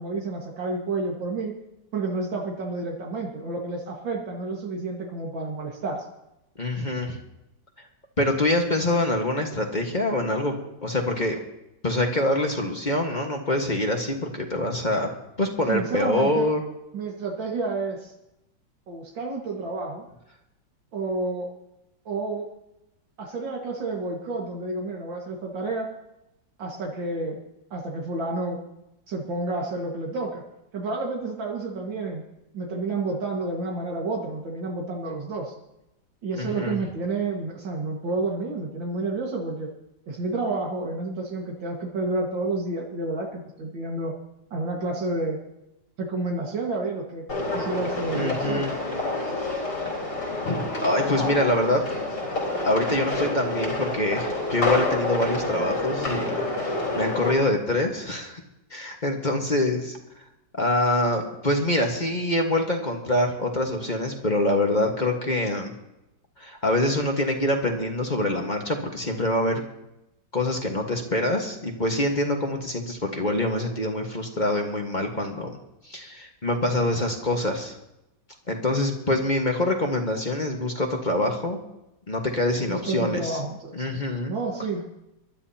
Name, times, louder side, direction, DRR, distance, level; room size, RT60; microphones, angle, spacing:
voice 1, 0.0-1.6 1.9-6.0 15.7-16.5 16.9-18.1 18.9-20.0 20.9-21.5 22.1-22.5 23.2-25.9 26.6-27.4 27.7-28.6 29.1-30.4 30.7-32.2 32.5-35.5 36.2-39.7 40.1-44.1 44.5-45.4 46.0-47.3 47.5-48.6 82.6-84.0 84.3-84.8, right 3 dB, 85° right, -1 dB, 2.5 m, -30 dB
voice 2, 6.6-7.2 8.2-10.5 10.8-11.4 11.8-15.1 15.4-16.6 36.4-36.8 48.1-48.7 50.4-51.8 52.6-56.4 56.9-58.4 58.7-60.0 60.5-65.7 66.4-69.6 70.3-75.5 75.9-77.8 78.5-81.6 82.1-83.4 83.7-84.3, left 1 dB, 25° left, 2 dB, 1.5 m, -25 dB
sound 1, 47.3-57.3, left 2 dB, 70° left, 4.7 m, -28 dB
23.5 x 12.5 x 2.8 m, 0.90 s
omnidirectional pair, 2.0 m